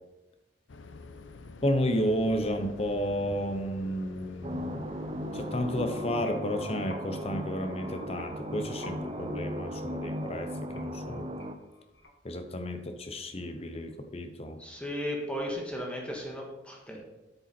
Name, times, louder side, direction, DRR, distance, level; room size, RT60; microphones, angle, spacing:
sound 1, 0.7-5.9, left 3 dB, 90° left, 0.6 m, -47 dB
voice 1, 1.6-4.9 5.3-11.3 12.2-14.6, equal, 35° left, 7 dB, 0.8 m, -32 dB
sound 2, 4.4-11.5, equal, 30° right, 0.5 m, -37 dB
sound 3, 5.6-12.4, left 2 dB, 70° left, 1.4 m, -50 dB
voice 2, 14.6-17.0, equal, 5° left, -1 dB, 1.5 m, -35 dB
8.2 x 6.9 x 4.3 m, 1.1 s
head